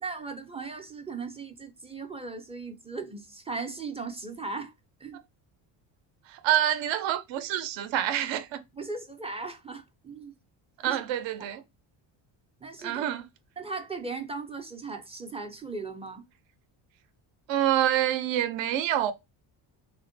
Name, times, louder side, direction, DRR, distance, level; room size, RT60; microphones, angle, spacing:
voice 1, 0.0-4.7 5.0-5.2 8.7-10.3 10.8-11.0 12.6-13.0 13.6-16.2, right 4 dB, 15° right, 0.4 m, -37 dB
voice 2, 6.3-8.6 10.8-11.6 12.8-13.2 17.5-19.1, right 11 dB, 70° right, 0.6 m, -27 dB
3.6 x 2.1 x 2.5 m
cardioid pair, 120°, 47 cm